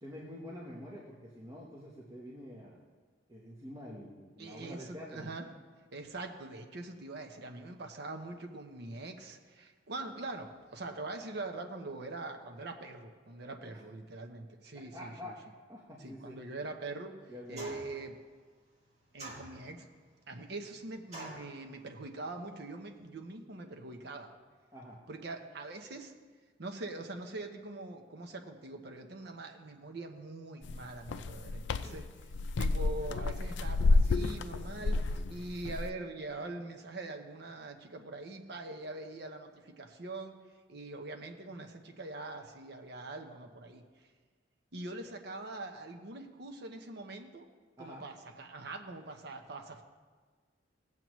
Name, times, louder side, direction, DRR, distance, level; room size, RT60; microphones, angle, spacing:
voice 1, 0.0-2.8 3.3-5.3 14.9-15.3 15.7-16.4 17.3-17.7 24.7-25.0 31.8-32.0 47.8-48.0, left 1 dB, 20° right, -5 dB, 1.0 m, -47 dB
voice 2, 4.4-5.4 5.9-15.3 16.0-17.2 17.5-18.2 19.1-19.9 20.3-24.3 25.1-26.1 26.6-32.1 32.6-40.4 40.7-43.8 44.7-47.5 47.8-49.8, right 2 dB, 65° right, 4 dB, 0.9 m, -43 dB
sound 1, 17.6-18.0 19.2-19.9 21.1-21.5, right 1 dB, 40° right, 1.7 m, -45 dB
sound 2, 30.6-35.9, left 3 dB, 70° left, 0.4 m, -30 dB
17.0 x 7.6 x 3.1 m, 1.5 s
head